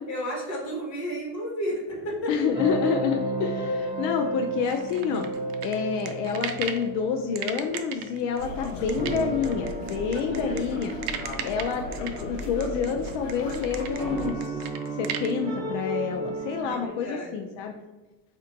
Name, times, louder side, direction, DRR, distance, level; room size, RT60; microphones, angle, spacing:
voice 1, 0.1-2.4 10.1-10.6 16.6-17.3, equal, 45° left, -3 dB, 1.5 m, -33 dB
sound 1, 1.9-16.9, right 1 dB, 10° right, 1.0 m, -34 dB
voice 2, 2.3-5.3 5.6-11.0 11.4-17.8, left 6 dB, 85° left, 3 dB, 0.5 m, -28 dB
sound 2, 4.6-6.9 7.3-15.3, right 9 dB, 85° right, 0.5 m, -36 dB
sound 3, 8.3-14.3, left 2 dB, 70° left, 1.0 m, -36 dB
4.2 x 2.6 x 2.6 m, 1.1 s
cardioid pair, 150°, 39 cm